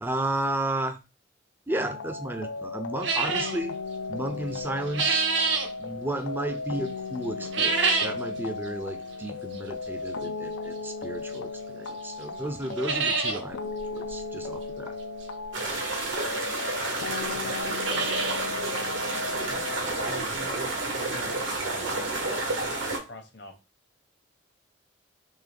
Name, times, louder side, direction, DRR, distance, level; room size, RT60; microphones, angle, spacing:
voice 1, 0.0-1.0 1.7-3.7 4.1-5.2 5.8-15.0, right 1 dB, 10° right, 0.4 m, -33 dB
sound 1, 1.7-20.2, left 4 dB, 85° left, 0.4 m, -36 dB
sound 2, 3.0-3.6 4.5-5.7 7.4-8.2 8.6-8.7 9.5-9.6 11.3-11.4 11.9-12.0 12.2-12.3 12.6-13.4 13.8-13.9 14.1-14.2 15.7-15.8 16.6-16.7 16.9-17.0 17.5-18.5 18.8-18.9 19.4-19.5 20.0-20.1 21.8-21.9 22.0-22.1 22.6-22.7, right 4 dB, 70° right, 0.7 m, -27 dB
sound 3, 15.5-23.0, right 2 dB, 85° right, 1.4 m, -30 dB
voice 2, 16.7-18.1 19.1-23.5, left 2 dB, 60° left, 1.0 m, -43 dB
3.7 x 3.1 x 3.4 m
head